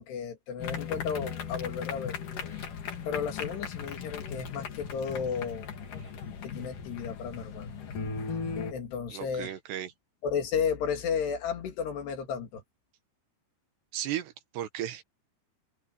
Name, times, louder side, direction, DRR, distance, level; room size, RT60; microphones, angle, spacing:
voice 1, 0.0-2.2 3.1-5.7 6.4-7.7 8.7-9.5 10.2-12.6, left 6 dB, 70° left, 4.5 m, -33 dB
sound 1, 0.6-8.7, left 6 dB, 55° left, 3.6 m, -37 dB
voice 2, 9.1-9.9 13.9-15.0, right 11 dB, 75° right, 3.4 m, -35 dB
omnidirectional pair, 5.1 m